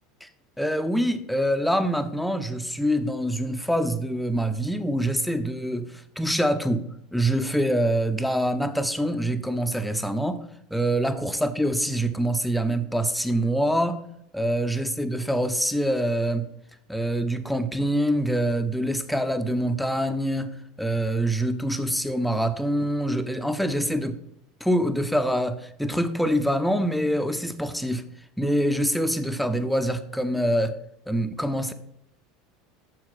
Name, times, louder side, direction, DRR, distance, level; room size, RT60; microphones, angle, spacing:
voice 1, 0.6-6.9 7.1-10.4 10.7-14.0 14.3-16.5 16.9-24.2 24.6-28.1 28.4-30.8 31.1-31.7, equal, ahead, 9 dB, 0.8 m, -25 dB
8.6 x 7.2 x 4.0 m, 0.79 s
figure-of-eight pair, 75°, 0 cm